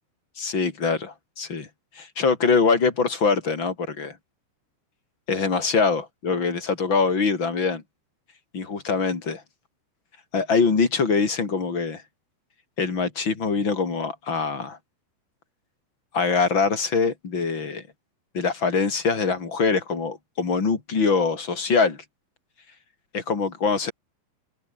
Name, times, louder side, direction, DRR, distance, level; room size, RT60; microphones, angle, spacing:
voice 1, 0.4-1.7 1.9-4.2 5.3-7.8 8.5-9.4 10.3-12.0 12.8-14.8 16.1-17.8 18.3-22.0 23.1-23.9, left 5 dB, 30° left, 3.0 m, -23 dB
open air
omnidirectional pair, 5.6 m